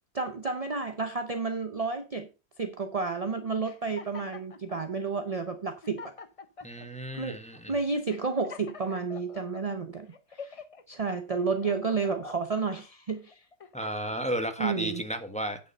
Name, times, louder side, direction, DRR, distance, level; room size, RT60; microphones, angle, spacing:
voice 1, 0.1-2.3 2.6-6.1 7.2-7.4 7.7-10.1 10.3-10.6 10.9-13.4 14.6-15.0, right 4 dB, 40° right, 0.5 m, -31 dB
sound 1, 3.6-4.8 5.5-5.6 5.8-6.9 7.5-7.6 8.1-9.6 10.1-10.8 11.3-12.6 13.2-14.2, left 5 dB, 50° left, 0.4 m, -46 dB
voice 2, 6.6-7.7 13.7-15.6, right 1 dB, 5° left, 1.2 m, -33 dB
9.1 x 6.7 x 5.4 m
omnidirectional pair, 1.8 m